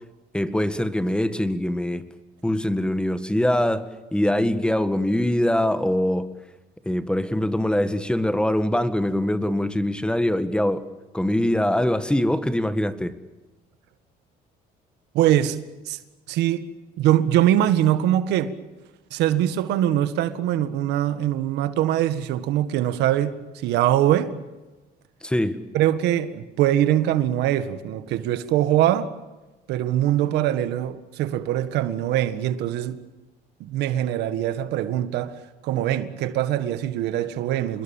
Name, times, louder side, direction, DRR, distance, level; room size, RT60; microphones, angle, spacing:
voice 1, 0.3-2.0 2.4-3.9 4.1-6.3 6.9-10.8 11.1-13.1 25.2-25.6, left 1 dB, 5° left, 1.7 m, -23 dB
voice 2, 15.1-15.6 15.9-16.0 16.3-16.7 17.0-18.6 19.1-24.3 25.7-29.1 29.7-33.0 33.6-37.8, right 12 dB, 85° right, 1.8 m, -22 dB
27.5 x 21.5 x 7.3 m
cardioid pair, 110°, 17 cm